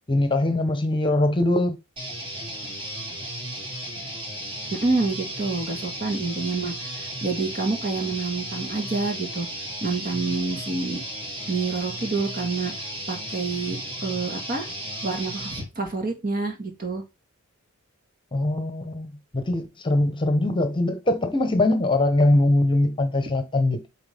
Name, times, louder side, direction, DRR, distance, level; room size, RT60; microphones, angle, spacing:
voice 1, 0.1-1.8 18.3-19.1 19.3-23.9, left 2 dB, 20° left, 1.0 m, -22 dB
sound 1, 2.0-15.7, right 1 dB, 25° right, 1.7 m, -34 dB
voice 2, 4.7-9.5 9.8-11.0 11.5-14.7 15.0-17.0, right 3 dB, 40° right, 1.7 m, -28 dB
7.9 x 4.5 x 3.5 m
head